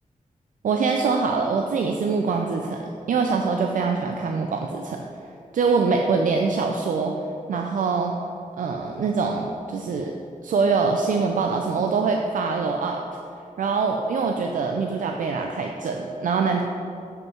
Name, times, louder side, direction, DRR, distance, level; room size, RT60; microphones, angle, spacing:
voice 1, 0.6-5.0 5.5-7.2 7.5-8.1 8.6-10.2 10.4-13.0 13.6-16.6, right 4 dB, 75° right, 3 dB, 0.5 m, -24 dB
7.5 x 5.4 x 4.5 m, 2.6 s
wide cardioid pair, 125°, 14 cm